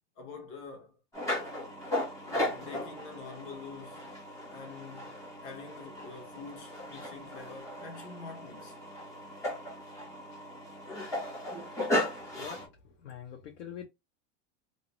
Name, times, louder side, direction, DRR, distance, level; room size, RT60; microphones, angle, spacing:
voice 1, 0.2-1.0 2.2-4.1 4.5-8.8, left 5 dB, 35° left, 0.9 m, -46 dB
sound 1, 1.1-12.7, left 1 dB, 10° left, 1.0 m, -36 dB
voice 2, 12.3-13.9, left 8 dB, 85° left, 0.8 m, -44 dB
2.5 x 2.0 x 2.9 m
supercardioid pair, 150°, 35 cm